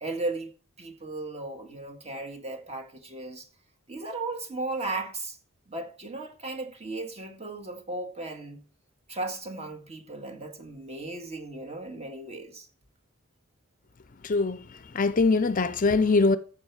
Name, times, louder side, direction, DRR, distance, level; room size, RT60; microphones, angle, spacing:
voice 1, 0.0-0.5 0.8-3.5 3.9-5.4 5.7-8.6 9.1-12.7, right 2 dB, 30° right, 1.8 m, -36 dB
voice 2, 14.2-16.4, left 3 dB, 40° left, 0.5 m, -23 dB
14.5 x 5.8 x 4.7 m
head